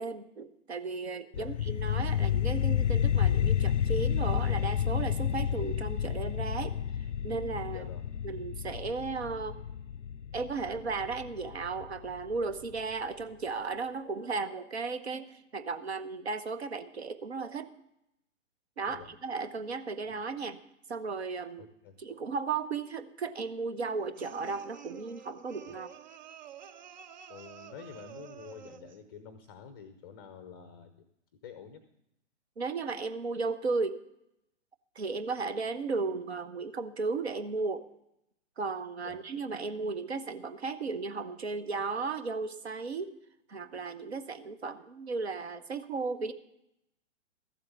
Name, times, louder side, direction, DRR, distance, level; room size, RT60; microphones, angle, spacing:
voice 1, 0.0-6.8 7.2-7.9 8.2-9.6 10.3-17.7 18.8-20.6 20.9-21.6 22.0-25.9 32.6-34.0 34.9-37.9 38.6-43.1 43.5-46.3, right 4 dB, 60° right, 11 dB, 1.1 m, -35 dB
sound 1, 1.3-12.4, left 9 dB, 75° left, 0.5 m, -30 dB
voice 2, 7.7-8.0 18.9-19.1 20.1-20.2 21.6-22.0 25.7-25.8 27.3-31.1 31.4-31.8 39.0-39.2, left 7 dB, 20° left, 10 dB, 0.5 m, -48 dB
sound 2, 24.2-29.0, right 8 dB, 40° right, 0.5 m, -50 dB
14.0 x 7.7 x 6.9 m, 0.82 s
figure-of-eight pair, 120°, 36 cm